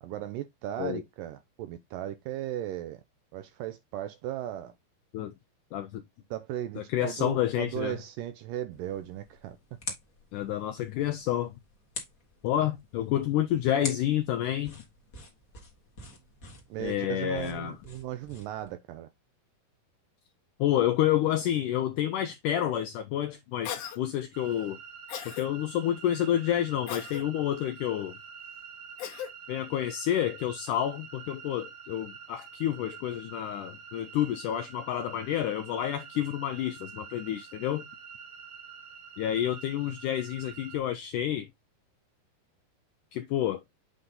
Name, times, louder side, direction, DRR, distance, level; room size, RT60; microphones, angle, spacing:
voice 1, 0.0-3.0 3.3-4.7 6.3-9.6 16.7-19.1, right 12 dB, 85° right, 2.0 m, -36 dB
voice 2, 5.7-6.0 6.8-8.0 10.3-11.5 12.4-14.8 16.8-17.8 20.6-24.8 25.3-28.2 29.5-37.8 39.2-41.5 43.1-43.6, left 11 dB, 85° left, 1.8 m, -29 dB
sound 1, 8.7-18.7, left 4 dB, 50° left, 0.9 m, -46 dB
Cough, 23.6-24.0 25.1-25.5 26.9-27.2 29.0-29.3, left 10 dB, 70° left, 2.3 m, -37 dB
sound 2, 24.3-40.8, right 6 dB, 65° right, 1.5 m, -47 dB
7.9 x 3.9 x 3.6 m
omnidirectional pair, 4.3 m